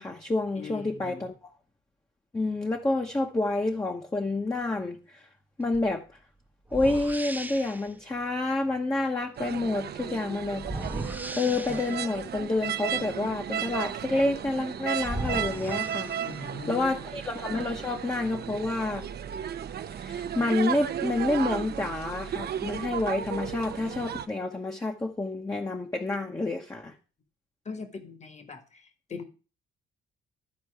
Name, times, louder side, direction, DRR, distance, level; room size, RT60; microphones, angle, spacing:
voice 1, 0.0-1.3 2.3-5.2 5.6-6.0 6.7-10.8 11.4-16.1 16.7-19.0 20.0-26.9, left 2 dB, 15° left, 1.0 m, -29 dB
voice 2, 0.6-1.2 16.2-17.1 27.6-29.2, left 4 dB, 35° left, 1.5 m, -40 dB
sound 1, 5.7-5.9 6.7-7.9 10.6-12.2 14.5-14.6 15.0-16.6, right 2 dB, 10° right, 0.9 m, -36 dB
sound 2, 9.4-24.3, right 9 dB, 55° right, 0.7 m, -34 dB
12.5 x 4.4 x 4.7 m
cardioid pair, 90°, 20 cm